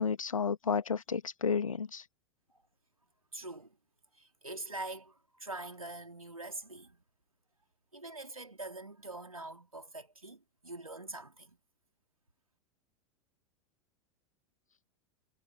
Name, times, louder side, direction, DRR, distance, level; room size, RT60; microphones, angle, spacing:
voice 1, 0.0-2.0, left 6 dB, 75° left, 2.0 m, -31 dB
voice 2, 3.3-3.8 4.1-7.0 7.9-11.6, right 2 dB, 85° right, 3.5 m, -44 dB
figure-of-eight pair, 90°, 17 cm